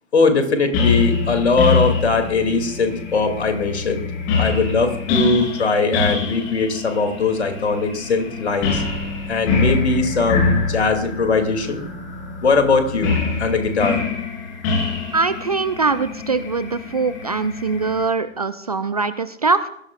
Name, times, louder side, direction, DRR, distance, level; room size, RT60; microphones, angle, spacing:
voice 1, 0.1-4.0 4.4-8.8 9.3-11.9 12.4-14.0, left 4 dB, 60° left, 6 dB, 2.7 m, -20 dB
sound 1, 0.7-18.0, left 4 dB, 25° left, 3.4 m, -25 dB
voice 2, 15.1-19.7, right 4 dB, 30° right, 13 dB, 0.5 m, -22 dB
21.0 x 16.5 x 2.4 m, 0.70 s
figure-of-eight pair, 130°, 38 cm